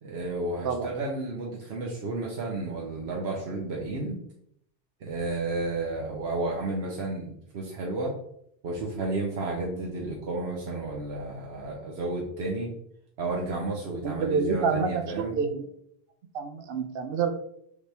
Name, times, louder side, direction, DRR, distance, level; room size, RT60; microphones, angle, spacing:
voice 1, 0.0-4.2 5.0-8.1 8.6-12.7 13.2-15.3, right 2 dB, 80° right, -3 dB, 1.1 m, -32 dB
voice 2, 14.0-15.6 16.3-17.3, right 5 dB, 65° right, 8 dB, 0.8 m, -28 dB
5.0 x 3.1 x 3.3 m, 0.72 s
omnidirectional pair, 1.1 m